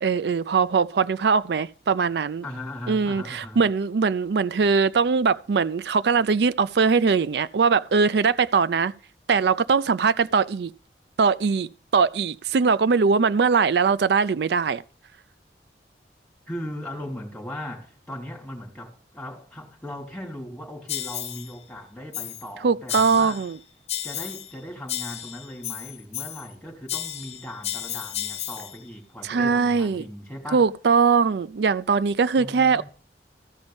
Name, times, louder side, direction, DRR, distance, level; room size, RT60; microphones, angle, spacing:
voice 1, 0.0-2.4 2.9-8.9 9.3-10.7 11.2-14.8 22.6-23.6 29.2-30.0 30.5-32.8, right 5 dB, 65° right, 0.4 m, -21 dB
voice 2, 2.4-3.6 16.5-23.4 24.0-30.6 32.4-32.8, left 1 dB, 5° left, 3.3 m, -38 dB
sound 1, 20.9-21.5 22.1-22.5 22.9-23.5 23.9-24.6 24.9-26.5 26.9-28.8, left 11 dB, 35° left, 0.8 m, -33 dB
14.5 x 5.3 x 7.0 m
head